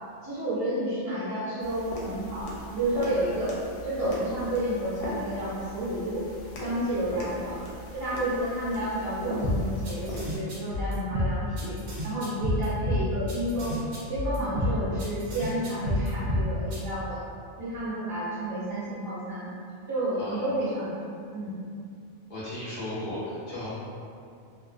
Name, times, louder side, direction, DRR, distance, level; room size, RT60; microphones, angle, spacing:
voice 1, 0.2-3.5 3.8-6.3 6.6-7.6 7.9-11.8 12.0-13.8 14.1-17.2 17.6-19.5 19.9-20.9 21.3-21.6, right 1 dB, 15° right, -13 dB, 1.1 m, -30 dB
sound 1, 1.6-10.4, left 1 dB, 85° left, 0.9 m, -40 dB
sound 2, 9.4-16.8, left 1 dB, 65° right, 0.9 m, -29 dB
voice 2, 20.1-20.5 22.3-23.7, left 1 dB, 50° left, -11 dB, 1.0 m, -36 dB
2.4 x 2.3 x 2.4 m, 2.4 s
omnidirectional pair, 1.3 m